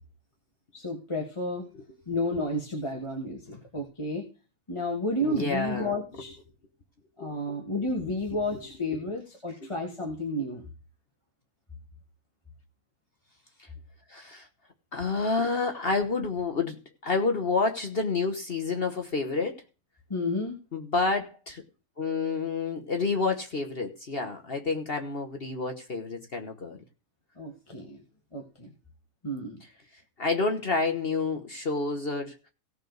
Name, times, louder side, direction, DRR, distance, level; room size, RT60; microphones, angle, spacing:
voice 1, 0.7-1.6 2.1-4.3 4.7-6.3 7.2-10.6 20.1-20.6 27.4-28.0 28.3-28.7 29.2-29.6, left 1 dB, 20° left, 1.6 m, -31 dB
voice 2, 5.2-6.0 7.2-7.6 8.5-8.6 9.6-9.7 13.6-13.7 14.1-14.5 14.9-19.6 20.7-21.6 22.0-26.8 30.2-32.4, left 4 dB, 45° left, 1.3 m, -29 dB
17.0 x 6.6 x 4.0 m
omnidirectional pair, 1.5 m